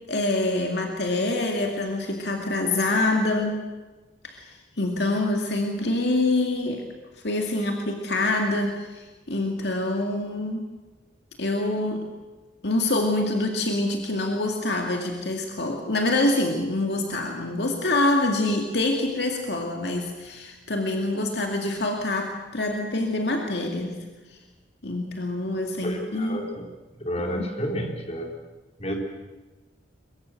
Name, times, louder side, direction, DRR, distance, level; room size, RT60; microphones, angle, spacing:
voice 1, 0.1-3.6 4.2-6.9 7.2-10.7 11.4-12.1 12.6-24.0 24.8-26.4 27.2-27.5, left 2 dB, 65° left, 2 dB, 2.4 m, -26 dB
voice 2, 25.8-26.7 27.0-28.3 28.8-28.9, equal, 35° left, 2 dB, 4.0 m, -30 dB
23.0 x 23.0 x 7.8 m, 1.2 s
head